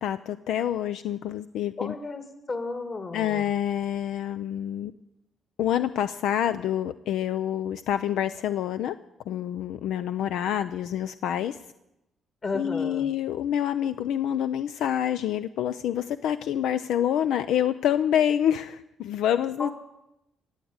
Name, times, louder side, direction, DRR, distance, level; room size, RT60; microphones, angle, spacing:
voice 1, 0.0-1.9 3.1-4.9 5.6-9.0 9.3-11.6 12.5-19.7, left 10 dB, 85° left, 12 dB, 0.4 m, -27 dB
voice 2, 1.8-3.5 12.4-13.1 19.6-19.7, left 3 dB, 40° left, 8 dB, 2.3 m, -33 dB
16.5 x 8.3 x 8.8 m, 0.89 s
cardioid pair, 90°, 0 cm